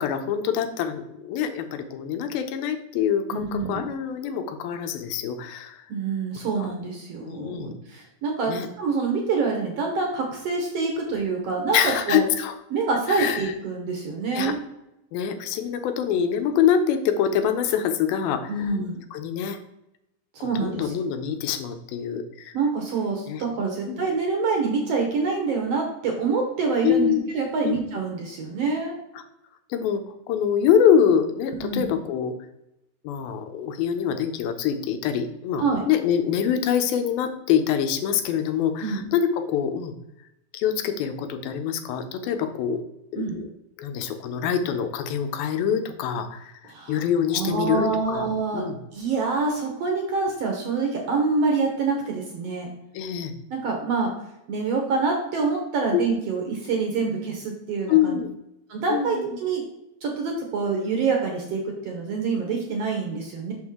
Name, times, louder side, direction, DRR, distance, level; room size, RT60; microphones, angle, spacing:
voice 1, 0.0-5.8 6.6-6.7 7.3-7.7 8.5-8.7 11.7-12.5 13.1-13.5 14.4-14.5 15.1-18.7 19.1-19.6 20.6-22.5 23.3-23.4 23.8-24.0 26.8-27.3 27.6-28.0 29.7-30.0 30.3-32.3 33.0-39.9 40.5-42.8 43.1-43.5 43.8-46.4 46.9-48.3 48.5-48.8 52.9-53.3 55.9-56.0 57.9-58.3 58.9-59.2, left 8 dB, 90° left, 7 dB, 2.6 m, -25 dB
voice 2, 3.3-3.9 5.9-12.2 12.7-14.6 18.5-19.0 20.3-20.9 22.5-28.9 31.6-32.0 35.6-35.8 38.8-39.0 43.2-43.4 46.7-47.0 47.3-48.6 48.9-52.7 53.5-54.1 54.5-58.2 58.7-59.6 60.0-63.5, right 4 dB, 70° right, 1 dB, 1.5 m, -26 dB
6.2 x 6.1 x 3.6 m, 0.87 s
omnidirectional pair, 4.1 m